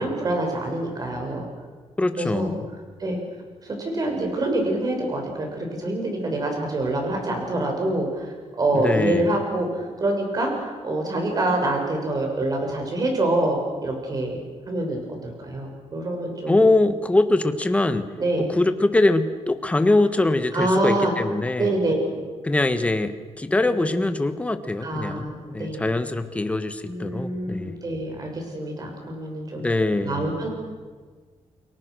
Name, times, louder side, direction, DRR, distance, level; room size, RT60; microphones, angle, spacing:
voice 1, 0.0-1.4 2.1-2.5 3.0-3.2 3.6-14.4 14.7-16.6 18.2-18.5 20.5-21.1 21.6-22.2 23.7-24.1 24.8-25.9 26.8-29.6 30.0-30.5, right 1 dB, 35° right, 2 dB, 6.4 m, -26 dB
voice 2, 2.0-2.7 8.7-9.4 16.5-18.1 18.4-21.7 22.4-27.8 29.6-30.3, left 2 dB, 10° left, 9 dB, 1.4 m, -23 dB
29.5 x 23.0 x 6.4 m, 1.5 s
wide cardioid pair, 160°, 11 cm